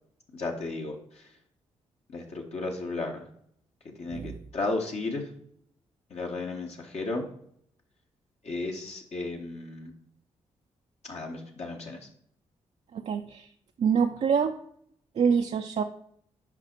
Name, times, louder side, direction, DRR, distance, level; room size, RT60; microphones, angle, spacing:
voice 1, 0.3-1.3 2.1-3.3 4.0-5.3 6.1-7.3 8.4-9.9 11.1-12.1, left 3 dB, 55° left, 0 dB, 1.1 m, -34 dB
voice 2, 12.9-13.5 13.8-14.5 15.2-15.8, right 6 dB, 60° right, 5 dB, 0.4 m, -25 dB
5.8 x 5.0 x 4.4 m, 0.67 s
supercardioid pair, 50°, 13 cm